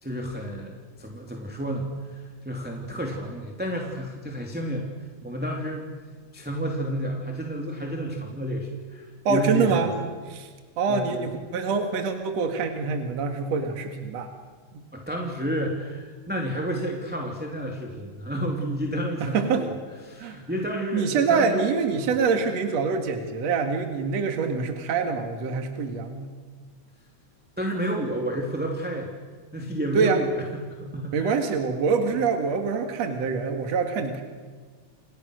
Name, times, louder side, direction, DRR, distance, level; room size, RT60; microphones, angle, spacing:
voice 1, 0.0-4.9 5.2-5.9 6.3-10.1 10.9-11.2 14.9-19.7 20.0-22.1 27.6-29.1 29.5-31.4, right 1 dB, 5° right, 0 dB, 2.6 m, -31 dB
voice 2, 9.2-9.9 10.3-10.5 10.8-14.3 19.2-19.6 20.2-20.4 20.9-26.3 29.9-30.2 31.1-34.2, right 5 dB, 65° right, 5 dB, 3.1 m, -25 dB
29.5 x 28.5 x 6.5 m, 1.5 s
omnidirectional pair, 3.3 m